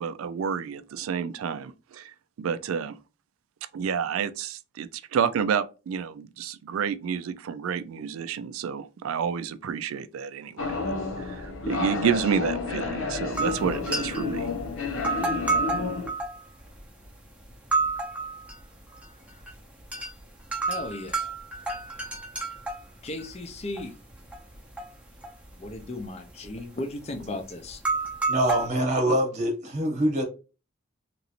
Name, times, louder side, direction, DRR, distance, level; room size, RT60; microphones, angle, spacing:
voice 1, 0.0-2.1 2.4-3.0 3.7-10.8 11.2-14.5, right 7 dB, 80° right, 0.3 m, -29 dB
sound 1, 10.6-16.1, left 4 dB, 75° left, 0.7 m, -30 dB
sound 2, 13.4-14.4 14.9-17.1 17.5-18.6 18.9-19.5 19.8-20.1 20.5-23.8 24.1-24.9 25.2-26.0 26.3-26.6 27.2-27.3 27.7-28.7, right 3 dB, 5° right, 0.6 m, -29 dB
voice 2, 20.7-21.3 23.0-24.0 25.6-27.8, left 2 dB, 30° left, 0.5 m, -36 dB
voice 3, 28.3-30.2, right 1 dB, 35° right, 0.9 m, -24 dB
2.9 x 2.5 x 2.8 m
head